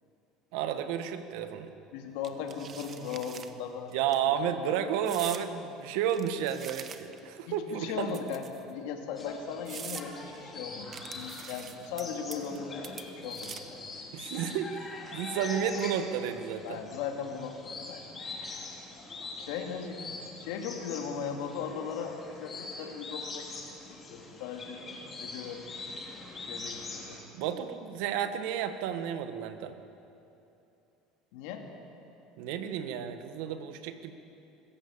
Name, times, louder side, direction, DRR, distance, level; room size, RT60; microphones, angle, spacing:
voice 1, 0.5-1.7 3.9-8.2 14.1-16.8 27.3-29.7 32.4-34.1, right 9 dB, 75° right, 9 dB, 1.5 m, -32 dB
voice 2, 1.9-3.9 7.5-13.6 16.6-18.3 19.4-23.5 24.1-24.8 25.2-25.6 26.4-27.2 31.3-31.6, left 6 dB, 80° left, 3 dB, 2.6 m, -38 dB
sound 1, 2.2-3.5 3.9-4.2 5.1-5.5 6.1-7.3 8.1-8.7 9.2-9.3 9.7-10.1 10.9-12.0 12.3-12.6 12.8-13.8, right 7 dB, 35° right, 1.2 m, -44 dB
sound 2, 9.2-27.2, left 3 dB, 25° left, 3.3 m, -43 dB
25.0 x 15.0 x 7.2 m, 2.8 s
supercardioid pair, 125°, 0 cm